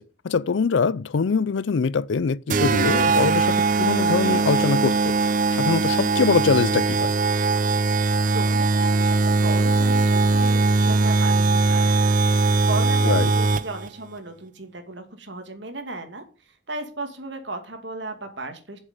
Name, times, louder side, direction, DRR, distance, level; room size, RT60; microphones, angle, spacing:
voice 1, 0.2-5.1 5.5-7.1 13.0-13.3, left 5 dB, 75° left, 0.5 m, -23 dB
sound 1, 2.5-13.9, right 3 dB, 40° right, 0.5 m, -20 dB
voice 2, 8.3-12.1 12.4-18.8, right 2 dB, 70° right, 2.5 m, -35 dB
7.3 x 6.6 x 8.1 m
head